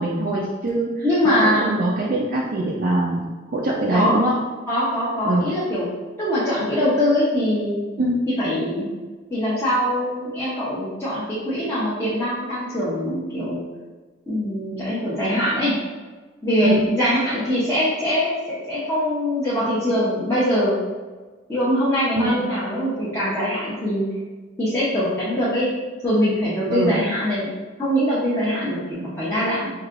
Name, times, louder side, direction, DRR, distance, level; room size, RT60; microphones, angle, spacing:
voice 1, 0.0-4.4 5.2-5.5 8.0-8.2 16.6-16.9 22.1-22.5 26.7-27.0, right 1 dB, 50° right, -5 dB, 0.5 m, -23 dB
voice 2, 1.0-1.7 3.9-4.2 4.7-5.9 6.2-7.8 8.4-8.9 9.3-13.6 14.3-15.7 16.4-20.8 21.5-24.0 24.6-25.7 26.0-27.5 27.8-29.7, equal, 15° left, -12 dB, 0.9 m, -22 dB
4.8 x 2.8 x 2.5 m, 1.3 s
head